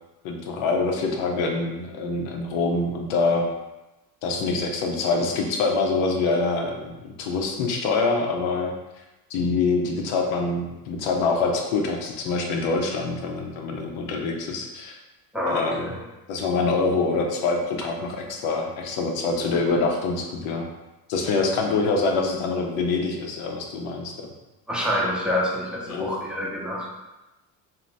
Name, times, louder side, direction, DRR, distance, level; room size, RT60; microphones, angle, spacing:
voice 1, 0.2-3.5 4.2-8.7 9.3-15.0 15.5-15.9 16.3-20.6 21.1-24.3 25.9-26.1, left 3 dB, 75° left, 2 dB, 0.7 m, -25 dB
voice 2, 15.3-16.0 24.7-26.9, left 1 dB, ahead, -4 dB, 0.7 m, -27 dB
2.7 x 2.1 x 3.2 m, 1.0 s
hypercardioid pair, 65°, 47 cm